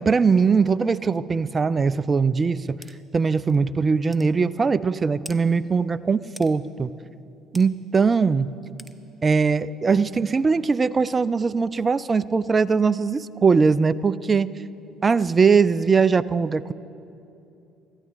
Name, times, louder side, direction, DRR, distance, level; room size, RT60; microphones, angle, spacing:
voice 1, 0.0-2.8 3.1-6.9 7.5-8.5 9.2-14.6 15.0-16.7, right 5 dB, 30° right, 19 dB, 0.3 m, -21 dB
sound 1, 2.8-3.0 3.5-3.6 4.1-4.3 5.2-5.4 6.4-6.5 7.5-7.7 8.8-9.0, equal, 5° right, 0.7 m, -42 dB
21.5 x 14.5 x 2.5 m, 2.7 s
figure-of-eight pair, 55°, 0 cm